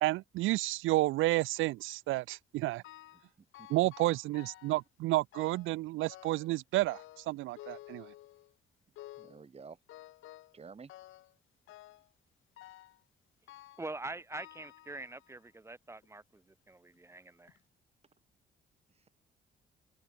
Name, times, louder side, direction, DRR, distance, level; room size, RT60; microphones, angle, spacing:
voice 1, 0.0-2.8 3.7-8.1, right 18 dB, 85° right, 0.4 m, -31 dB
sound 1, 2.8-3.3 3.5-4.8 5.3-5.8 6.1-6.6 6.9-8.5 9.0-9.4 9.9-10.6 10.9-11.3 11.7-12.1 12.6-13.0 13.5-13.9 14.3-15.4 16.0-16.1 16.9-17.0 17.5-17.6, left 15 dB, 85° left, 2.2 m, -52 dB
voice 2, 3.6-3.9 9.2-9.8 10.5-10.9 18.9-19.1, right 5 dB, 30° right, 1.8 m, -51 dB
voice 3, 13.8-17.5, right 2 dB, 15° right, 0.9 m, -44 dB
open air
cardioid pair, 90°, 20 cm